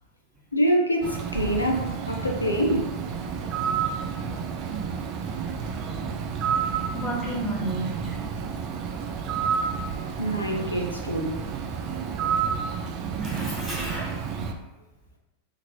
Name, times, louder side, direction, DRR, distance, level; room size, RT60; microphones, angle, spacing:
voice 1, 0.5-2.9 10.2-11.4, equal, 80° left, 2 dB, 0.4 m, -25 dB
Bird, 1.0-14.5, right 6 dB, 40° right, 0.3 m, -30 dB
voice 2, 6.9-8.2 13.0-14.5, right 1 dB, ahead, -8 dB, 1.1 m, -33 dB
2.8 x 2.5 x 2.7 m, 1.0 s
figure-of-eight pair, 90°, 0 cm